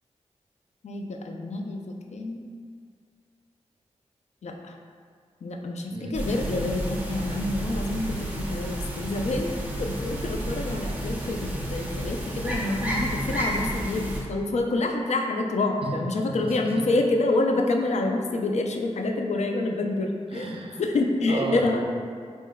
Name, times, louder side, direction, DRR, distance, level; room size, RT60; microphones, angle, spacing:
voice 1, 0.8-1.8 2.1-2.4 4.4-4.7 5.4-20.5 20.8-21.8, left 2 dB, 65° left, 3 dB, 0.4 m, -27 dB
sound 1, 6.1-14.2, right 1 dB, 15° right, 0.9 m, -31 dB
voice 2, 16.2-16.7 20.3-20.8 21.3-21.9, right 2 dB, 50° right, 1 dB, 0.5 m, -32 dB
4.2 x 3.4 x 2.2 m, 2.1 s
cardioid pair, 50°, 12 cm